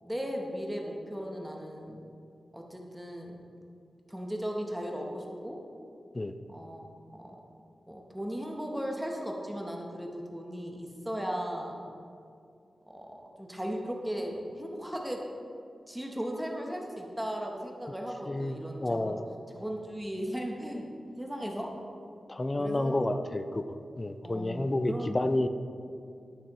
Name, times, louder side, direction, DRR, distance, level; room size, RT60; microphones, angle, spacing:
voice 1, 0.0-2.0 2.5-3.4 4.1-5.6 6.5-6.9 7.1-7.4 7.9-11.8 12.9-15.2 15.9-19.2 19.6-20.9 21.2-21.7 22.6-23.1 24.2-25.2, equal, 5° right, 0 dB, 0.9 m, -37 dB
voice 2, 18.8-19.2 22.3-23.6 24.0-25.5, left 1 dB, 25° left, 9 dB, 0.4 m, -30 dB
11.5 x 6.9 x 3.0 m, 2.4 s
wide cardioid pair, 105°, 0 cm